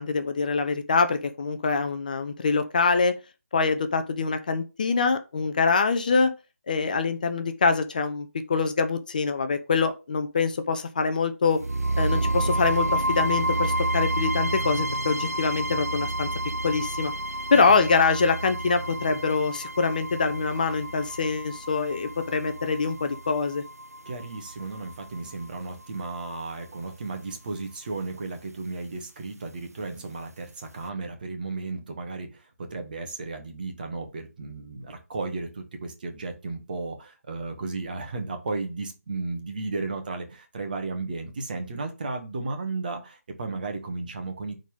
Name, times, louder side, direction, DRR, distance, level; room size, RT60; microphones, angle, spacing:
voice 1, 0.0-3.1 3.5-6.3 6.7-11.6 12.0-16.3 16.6-17.1 17.5-23.6, left 4 dB, 35° left, 9 dB, 0.6 m, -24 dB
sound 1, 11.6-25.6, right 1 dB, 85° right, 0.4 m, -30 dB
voice 2, 17.5-17.9 24.0-44.6, right 3 dB, 35° right, 4 dB, 1.6 m, -34 dB
9.1 x 4.0 x 3.5 m, 0.29 s
figure-of-eight pair, 150°, 8 cm